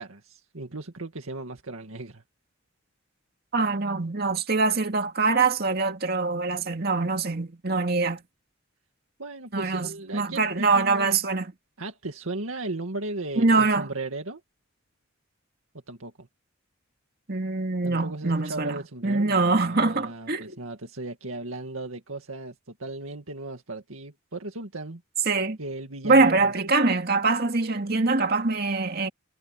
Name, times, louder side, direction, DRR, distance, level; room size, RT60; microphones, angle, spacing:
voice 1, 0.0-2.2 9.2-11.2 11.8-14.4 15.9-16.3 17.8-25.0 25.6-26.5, right 2 dB, 85° right, 2.1 m, -36 dB
voice 2, 3.5-8.2 9.5-11.5 13.4-13.9 17.3-20.6 25.3-25.6 26.0-29.1, right 3 dB, 50° right, 2.2 m, -24 dB
head